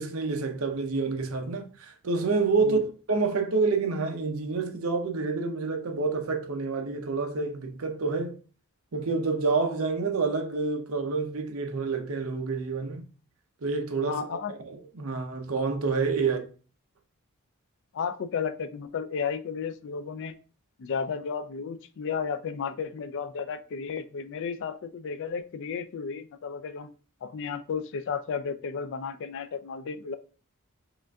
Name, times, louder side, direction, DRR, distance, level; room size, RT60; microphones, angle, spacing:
voice 1, 0.0-8.4 8.9-13.0 13.6-16.4, right 4 dB, 70° right, 0.7 m, -28 dB
voice 2, 14.0-14.5 16.2-16.4 17.9-20.3 20.8-26.9 27.2-30.2, left 6 dB, 55° left, 0.3 m, -33 dB
5.0 x 2.5 x 2.3 m
head